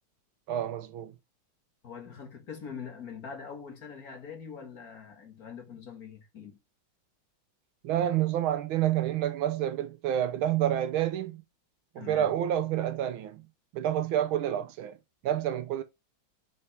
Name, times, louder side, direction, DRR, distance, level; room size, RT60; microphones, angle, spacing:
voice 1, 0.5-1.1 7.8-11.4 11.9-13.4 13.7-15.0 15.2-15.8, right 11 dB, 90° right, 1.6 m, -28 dB
voice 2, 1.8-6.6 12.0-12.3, left 6 dB, 45° left, 2.1 m, -43 dB
5.8 x 5.5 x 4.8 m
omnidirectional pair, 2.2 m